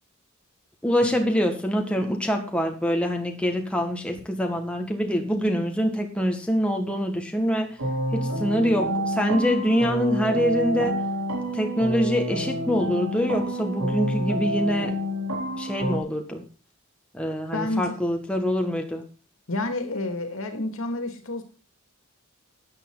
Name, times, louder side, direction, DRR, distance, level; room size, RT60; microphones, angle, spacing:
voice 1, 0.8-7.8 8.1-11.0 11.5-15.0 15.6-16.4 17.1-19.0, equal, 5° left, 3 dB, 1.7 m, -25 dB
sound 1, 7.8-16.0, equal, 80° right, 3.7 m, -28 dB
voice 2, 17.5-18.0 19.5-21.4, left 2 dB, 70° left, 7 dB, 2.4 m, -29 dB
12.5 x 9.6 x 4.0 m, 0.36 s
head